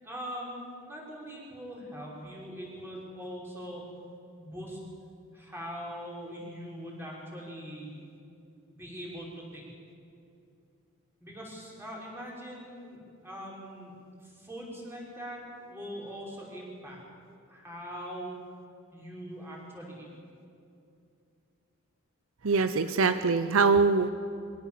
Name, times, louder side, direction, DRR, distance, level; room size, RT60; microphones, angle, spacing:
voice 1, 0.0-3.8 4.4-4.8 5.3-7.9 8.7-9.7 11.2-13.9 14.2-17.0 17.5-18.3 18.9-20.1, equal, 10° right, -3 dB, 5.6 m, -42 dB
voice 2, 22.4-24.1, right 4 dB, 70° right, 10 dB, 0.7 m, -23 dB
24.0 x 18.0 x 7.5 m, 2.5 s
head